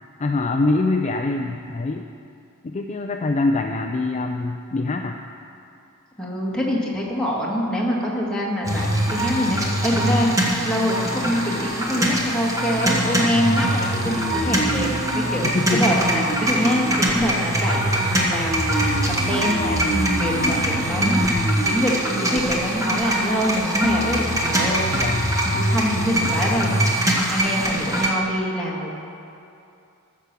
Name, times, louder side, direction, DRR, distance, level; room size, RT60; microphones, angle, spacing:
voice 1, 0.2-2.1 2.6-5.2 15.4-16.0 20.4-20.9 24.9-25.4, left 2 dB, 30° left, 4 dB, 0.4 m, -24 dB
voice 2, 6.2-15.4 15.7-25.1 25.5-26.8 27.3-29.0, equal, 5° left, -5 dB, 1.9 m, -25 dB
sound 1, 8.6-28.1, right 1 dB, 15° right, 1.4 m, -22 dB
14.5 x 6.0 x 6.8 m, 2.6 s
head